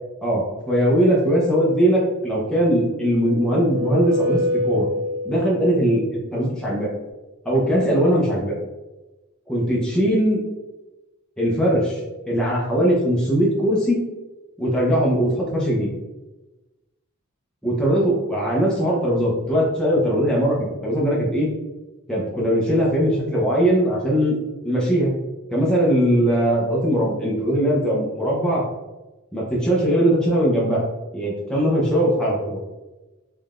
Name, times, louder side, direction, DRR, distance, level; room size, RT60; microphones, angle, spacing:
voice 1, 0.2-4.9 5.2-6.9 7.4-8.5 9.5-10.4 11.4-12.0 12.3-14.0 14.6-15.9 17.6-20.6 20.8-21.5 22.1-24.4 24.6-25.1 25.5-28.6 29.3-30.8 31.1-32.6, equal, 5° left, -6 dB, 0.6 m, -20 dB
sound 1, 2.8-5.7, left 1 dB, 90° right, 0.5 m, -26 dB
3.7 x 3.2 x 2.4 m, 1.1 s
head